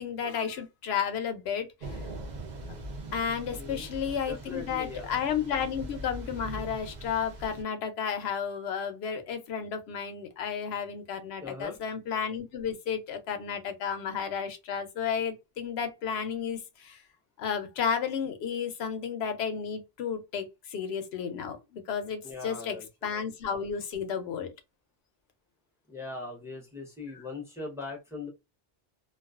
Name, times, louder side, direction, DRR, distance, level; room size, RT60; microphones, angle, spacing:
voice 1, 0.0-1.7 3.1-17.0 17.4-22.8 23.0-24.5 27.1-27.2, left 7 dB, 90° left, 0.8 m, -32 dB
Thunder / Rain, 1.8-7.6, right 1 dB, 50° right, 0.7 m, -41 dB
voice 2, 4.3-5.1 11.4-11.8 22.2-22.9 25.9-28.3, left 3 dB, 5° right, 0.6 m, -40 dB
2.3 x 2.3 x 2.3 m
omnidirectional pair, 1.0 m